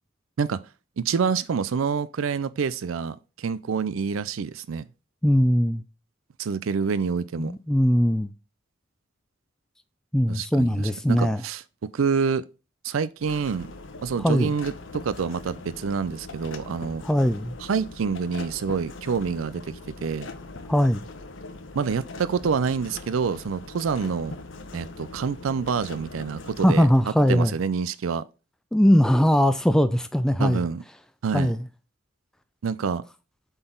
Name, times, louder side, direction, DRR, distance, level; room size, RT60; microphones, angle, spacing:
voice 1, 1.0-4.9 6.4-7.5 10.3-12.4 12.8-13.7 14.0-17.0 17.6-20.3 21.7-24.4 24.7-26.9 27.3-28.2 30.4-30.8 31.2-31.5 32.6-33.0, right 6 dB, 90° right, 0.4 m, -27 dB
voice 2, 5.2-5.8 7.4-8.3 10.1-11.4 14.2-14.5 17.0-17.5 20.7-21.0 26.6-27.5 28.7-30.6 31.3-31.6, equal, 5° left, 0.3 m, -20 dB
sound 1, 13.2-27.0, left 3 dB, 75° left, 1.0 m, -41 dB
7.8 x 4.0 x 3.7 m
head